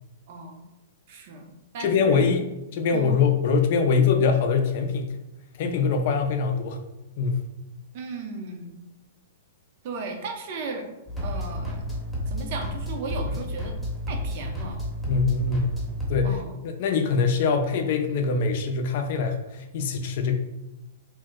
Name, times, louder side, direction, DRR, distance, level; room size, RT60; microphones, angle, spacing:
voice 1, 0.3-0.7 1.1-2.3 2.9-3.2 7.9-8.8 9.8-10.9 11.2-11.8 12.3-13.7 14.1-14.8 16.2-16.6, right 3 dB, 55° right, 4 dB, 0.5 m, -36 dB
voice 2, 1.8-2.4 2.7-5.2 5.6-6.8 7.2-7.4 15.1-15.7 16.1-16.4 16.6-20.3, left 5 dB, 55° left, 4 dB, 0.4 m, -23 dB
sound 1, 11.1-16.2, equal, 5° left, 0.8 m, -31 dB
2.6 x 2.0 x 3.5 m, 0.95 s
hypercardioid pair, 130°, 0 cm